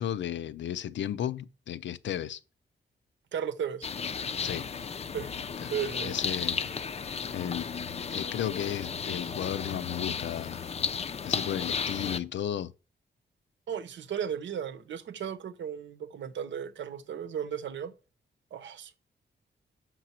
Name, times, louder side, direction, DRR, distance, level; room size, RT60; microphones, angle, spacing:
voice 1, 0.0-2.4 4.4-4.7 5.6-5.7 6.0-6.6 7.3-7.7 8.1-10.7 11.2-12.7, left 10 dB, 80° left, 0.5 m, -34 dB
voice 2, 3.3-3.9 5.1-5.3 5.7-6.2 13.7-17.9 18.5-18.9, right 8 dB, 85° right, 0.8 m, -35 dB
sound 1, 3.8-12.2, left 6 dB, 35° left, 0.4 m, -34 dB
6.2 x 5.9 x 4.3 m
wide cardioid pair, 160°, 19 cm